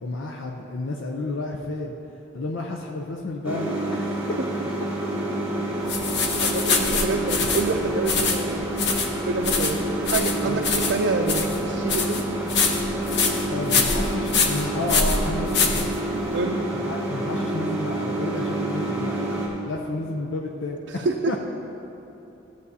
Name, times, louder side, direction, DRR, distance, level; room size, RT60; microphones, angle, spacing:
voice 1, 0.0-1.9 2.3-4.2 10.4-10.6 13.5-16.0 16.9-19.3 19.6-21.0 21.3-21.4, left 2 dB, 90° left, 1 dB, 0.6 m, -31 dB
sound 1, 3.4-19.5, right 1 dB, 5° right, 1.8 m, -28 dB
sound 2, 5.9-16.4, left 4 dB, 60° left, 0.8 m, -25 dB
voice 2, 6.4-12.2 16.3-16.7 20.9-21.3, right 3 dB, 65° right, 1 dB, 0.4 m, -27 dB
14.5 x 8.0 x 2.8 m, 2.9 s
head